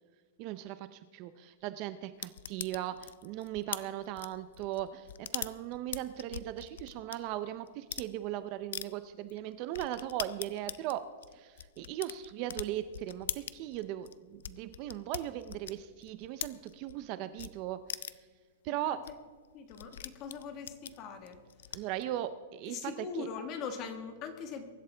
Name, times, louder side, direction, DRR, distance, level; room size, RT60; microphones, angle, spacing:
voice 1, 0.4-11.0 11.3-18.1 18.6-19.0 21.7-23.3, right 13 dB, 30° right, 12 dB, 0.5 m, -38 dB
sound 1, 2.2-7.2 7.7-8.1 8.7-8.9 9.3-9.4 9.7-17.0 17.4-17.5 17.9-18.3 18.7-18.8 19.0-19.1 19.4-22.0, left 9 dB, 75° left, 0.6 m, -42 dB
voice 2, 19.5-21.4 21.7-21.8 22.7-24.7, left 5 dB, 25° left, 7 dB, 1.4 m, -41 dB
23.0 x 11.5 x 3.3 m, 1.5 s
supercardioid pair, 175°, 0 cm